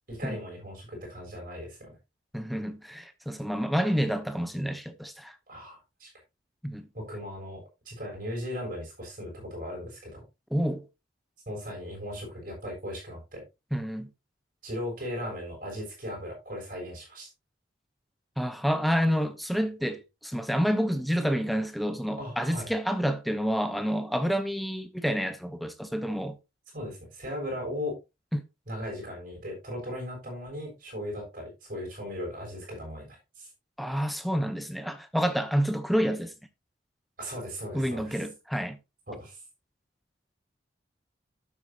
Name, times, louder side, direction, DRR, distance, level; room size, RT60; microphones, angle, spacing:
voice 1, 0.1-2.0 5.5-6.1 6.9-10.2 11.5-13.4 14.6-17.3 22.2-22.7 26.7-28.0 28.7-33.5 37.2-38.2 39.1-39.4, equal, 45° right, 7.0 m, -37 dB
voice 2, 2.3-5.3 6.6-6.9 10.5-10.8 13.7-14.1 18.4-26.4 28.3-28.4 33.8-36.3 37.7-38.8, equal, ahead, 0.8 m, -28 dB
11.5 x 8.1 x 2.9 m
head